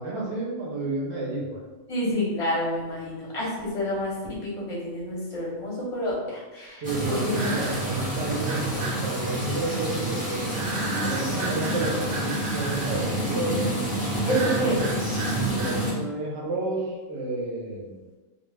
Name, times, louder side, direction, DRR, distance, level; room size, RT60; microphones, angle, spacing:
voice 1, 0.0-1.6 6.8-10.4 11.0-13.6 14.3-14.9 15.5-18.0, right 2 dB, 65° right, -3 dB, 0.8 m, -31 dB
voice 2, 1.9-4.1 4.4-7.5 14.2-14.8, equal, 35° left, -5 dB, 0.6 m, -28 dB
sound 1, 3.7-3.8 7.3-8.0 8.5-9.0 10.5-13.1 14.3-15.8, right 3 dB, 90° right, 1.0 m, -34 dB
sound 2, 6.8-15.9, right 1 dB, 10° right, 0.5 m, -28 dB
2.3 x 2.1 x 3.2 m, 1.2 s
omnidirectional pair, 1.4 m